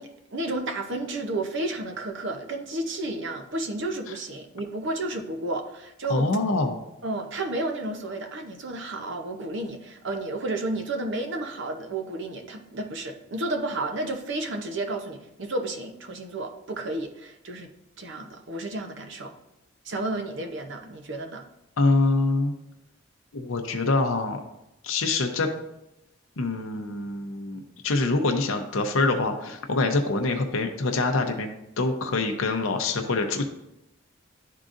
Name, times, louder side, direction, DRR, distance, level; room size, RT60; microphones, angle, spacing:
voice 1, 0.0-6.3 7.0-17.7 18.0-19.3 19.8-21.5, right 2 dB, 55° right, 5 dB, 0.7 m, -32 dB
voice 2, 6.1-6.8 21.8-22.5 23.3-24.4 24.8-25.5 26.4-33.4, left 3 dB, 70° left, 4 dB, 0.6 m, -25 dB
11.0 x 3.7 x 2.5 m, 0.86 s
head